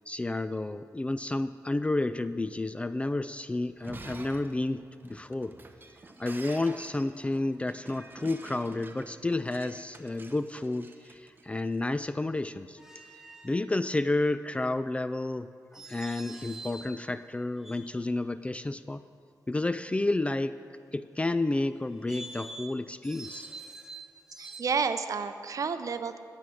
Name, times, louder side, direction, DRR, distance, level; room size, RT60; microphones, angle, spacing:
voice 1, 0.0-5.5 6.2-12.8 13.4-19.0 19.5-20.6 20.9-23.5, left 2 dB, 20° left, 13 dB, 0.3 m, -31 dB
Shatter, 3.7-11.7, right 2 dB, 30° right, 0.9 m, -48 dB
sound 1, 12.8-13.7 15.7-17.0 17.6-18.3 21.9-24.6, right 2 dB, 5° right, 1.2 m, -46 dB
voice 2, 24.4-26.2, right 5 dB, 55° right, 9 dB, 0.6 m, -30 dB
11.0 x 8.6 x 6.2 m, 2.2 s
cardioid pair, 70°, 7 cm